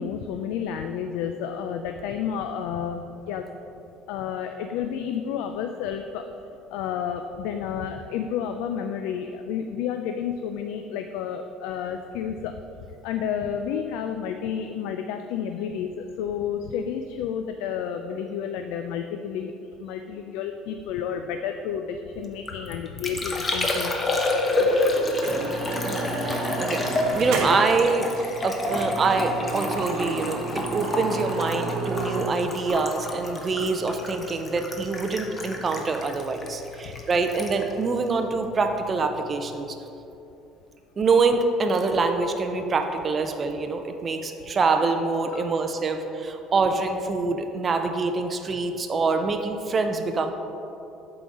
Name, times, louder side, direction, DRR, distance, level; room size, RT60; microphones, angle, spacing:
voice 1, 0.0-3.5 4.1-6.2 6.7-12.5 13.0-24.0 24.6-24.8 36.8-37.0 44.4-44.6 45.3-45.6, left 8 dB, 80° left, 6 dB, 0.3 m, -31 dB
Liquid, 22.2-38.9 39.1-39.7, left 2 dB, 20° left, 0.7 m, -29 dB
sound 1, 24.7-24.8 25.2-27.8 28.2-28.3 28.6-32.3, right 3 dB, 75° right, 1.0 m, -32 dB
voice 2, 25.8-26.8 27.1-28.1 28.4-39.8 41.0-50.3, right 4 dB, 25° right, 6 dB, 0.4 m, -25 dB
7.6 x 3.9 x 4.8 m, 2.8 s
cardioid pair, 140°, 0 cm